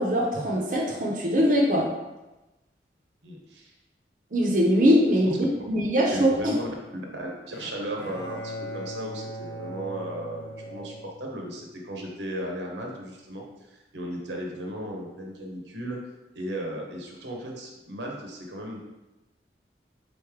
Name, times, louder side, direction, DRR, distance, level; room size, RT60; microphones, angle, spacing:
voice 1, 0.0-1.9 4.3-6.5, equal, 45° right, -3 dB, 0.6 m, -22 dB
voice 2, 3.2-3.7 6.1-6.7 6.9-16.0 16.3-18.8, right 1 dB, 85° right, 0 dB, 0.9 m, -36 dB
Bowed string instrument, 7.5-11.7, equal, 75° left, 0.5 m, -39 dB
3.9 x 3.2 x 3.6 m, 1.0 s
head